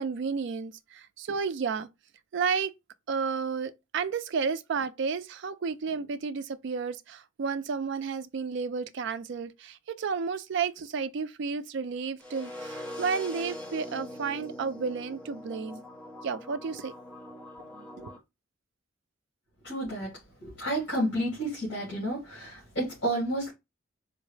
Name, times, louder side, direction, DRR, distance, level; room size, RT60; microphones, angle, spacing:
voice 1, 0.0-1.9 2.3-2.7 3.1-15.8 16.2-16.9 17.7-18.1, right 5 dB, 60° right, 0.3 m, -32 dB
sound 1, 12.2-18.2, equal, 5° left, 0.7 m, -42 dB
voice 2, 19.6-20.1 20.4-23.5, right 1 dB, 60° left, 2.1 m, -31 dB
4.5 x 2.1 x 3.1 m
head